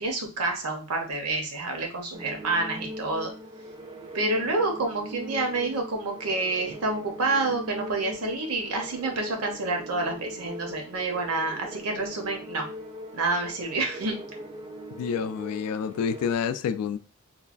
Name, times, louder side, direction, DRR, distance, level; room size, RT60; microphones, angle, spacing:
voice 1, 0.0-3.3 4.1-12.7 13.1-14.2, right 2 dB, 80° right, 0.7 m, -28 dB
sound 1, 2.1-16.3, equal, 20° right, 0.4 m, -41 dB
voice 2, 15.0-17.0, left 7 dB, 85° left, 0.3 m, -28 dB
3.1 x 2.2 x 2.4 m
head